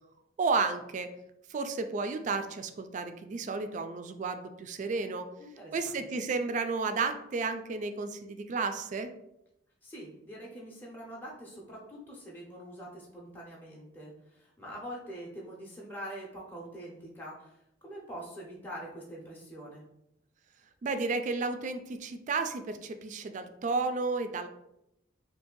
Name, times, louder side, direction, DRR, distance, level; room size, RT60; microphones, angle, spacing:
voice 1, 0.4-1.1 1.5-5.3 5.7-9.1 20.8-24.5, right 4 dB, 40° right, 8 dB, 0.3 m, -32 dB
voice 2, 5.4-6.0 9.8-19.8, equal, 10° left, -4 dB, 0.6 m, -44 dB
2.8 x 2.6 x 3.7 m, 0.84 s
head